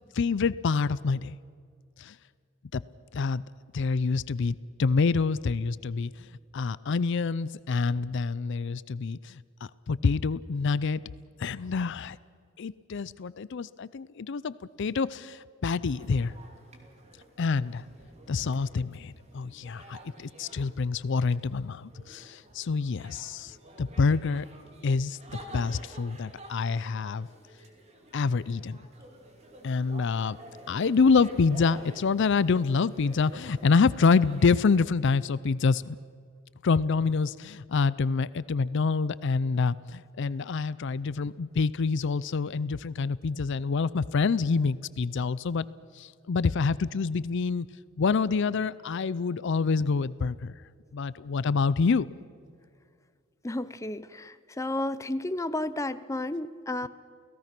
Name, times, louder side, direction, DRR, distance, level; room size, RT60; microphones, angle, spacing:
voice 1, 0.1-1.4 2.0-2.2 2.7-2.8 3.1-3.4 3.7-6.3 6.5-9.4 9.9-11.0 11.4-12.2 12.6-16.3 17.4-17.8 18.3-24.5 24.8-25.2 25.5-27.3 28.1-28.8 29.6-30.4 30.7-36.0 36.6-45.7 46.0-47.7 48.0-50.6 50.9-52.1, left 4 dB, 60° left, 18 dB, 0.5 m, -27 dB
sound 1, 15.9-34.6, right 1 dB, 35° right, 2.8 m, -50 dB
voice 2, 53.4-56.9, left 1 dB, 15° left, 12 dB, 0.6 m, -32 dB
29.5 x 17.5 x 6.0 m, 2.1 s
head